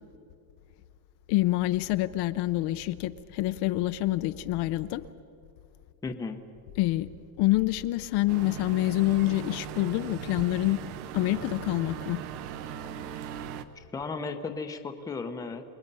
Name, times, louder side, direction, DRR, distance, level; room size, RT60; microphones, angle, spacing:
voice 1, 1.3-5.0 6.8-7.1 7.4-10.8 11.1-12.2, left 17 dB, 55° left, 12 dB, 0.7 m, -26 dB
voice 2, 6.0-6.4 13.8-15.6, left 4 dB, 10° left, 6 dB, 0.7 m, -35 dB
sound 1, 8.3-13.6, right 9 dB, 65° right, 1.1 m, -39 dB
29.0 x 20.5 x 5.5 m, 2.5 s
cardioid pair, 175°, 47 cm